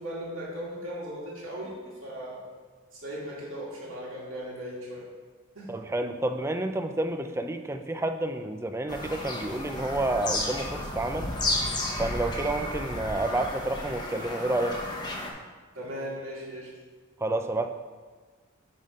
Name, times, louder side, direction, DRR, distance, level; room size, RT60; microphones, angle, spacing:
voice 1, 0.0-2.4 2.9-5.0 5.5-5.7 15.7-16.7, equal, 75° right, -6 dB, 2.5 m, -37 dB
voice 2, 5.7-11.3 12.0-14.8 17.2-17.7, right 2 dB, 15° right, 7 dB, 0.4 m, -29 dB
Bird vocalization bird call bird song, 8.9-15.3, left 1 dB, 20° left, 0.9 m, -32 dB
9.6 x 3.6 x 5.1 m, 1.4 s
head